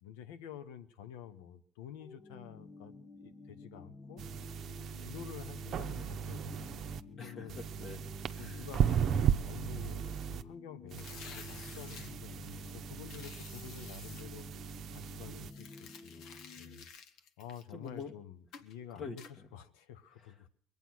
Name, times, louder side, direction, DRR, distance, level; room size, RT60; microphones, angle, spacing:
voice 1, 0.0-4.2 5.0-7.6 8.4-14.5 14.9-16.9 17.4-19.2 19.5-20.5, left 9 dB, 80° left, 11 dB, 1.1 m, -49 dB
sound 1, 2.0-16.8, left 3 dB, 25° left, 0.9 m, -52 dB
sound 2, 4.2-7.0 7.5-10.4 10.9-15.5, right 8 dB, 50° right, 0.8 m, -36 dB
voice 2, 7.2-8.7 17.7-18.1 18.9-19.5 20.2-20.5, left 4 dB, 45° left, 4 dB, 1.7 m, -46 dB
sound 3, 10.9-12.1 13.1-14.2 15.4-18.1 18.5-18.7 19.2-19.3, left 6 dB, 65° left, 1.4 m, -52 dB
21.5 x 9.0 x 6.2 m, 0.62 s
supercardioid pair, 90°, 0 cm